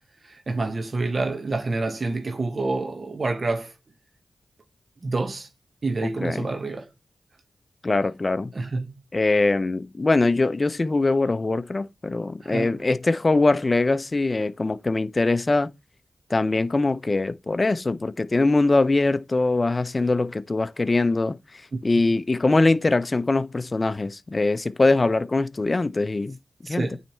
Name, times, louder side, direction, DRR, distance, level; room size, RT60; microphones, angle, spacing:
voice 1, 0.2-3.7 5.0-5.5 5.8-6.9 8.5-9.0 12.4-12.8 21.7-21.8 26.6-27.0, right 3 dB, 50° right, 1.0 m, -28 dB
voice 2, 7.8-8.5 9.1-15.7 16.3-21.4 21.8-26.4 26.7-26.9, left 2 dB, 35° left, 0.5 m, -22 dB
9.1 x 3.3 x 4.3 m
cardioid pair, 60°, 0 cm